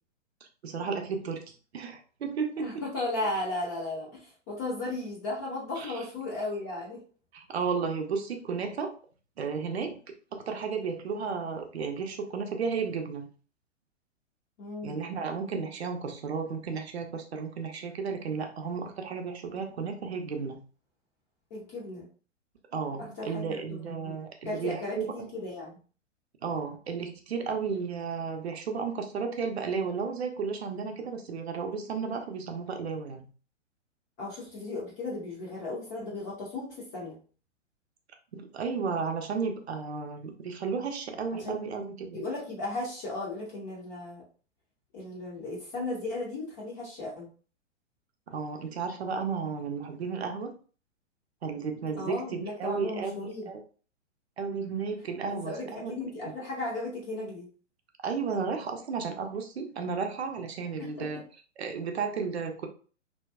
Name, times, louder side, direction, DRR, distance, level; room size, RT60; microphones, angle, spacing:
voice 1, 0.6-1.4 1.7-2.7 5.8-5.9 7.3-8.9 9.4-13.3 14.8-20.6 22.7-25.1 26.4-33.3 38.3-42.2 48.3-50.5 51.4-53.2 53.5-53.6 54.4-55.9 58.0-61.2 61.6-62.7, right 5 dB, 55° right, 5 dB, 0.6 m, -33 dB
voice 2, 2.6-7.0 14.6-15.0 21.5-22.1 23.0-24.2 24.4-25.8 34.2-37.2 41.4-41.6 42.1-44.2 44.9-47.3 52.0-53.5 55.3-57.5 60.8-61.1, left 2 dB, 15° left, -4 dB, 0.4 m, -35 dB
2.6 x 2.2 x 2.2 m, 0.38 s
figure-of-eight pair, 110°, 38 cm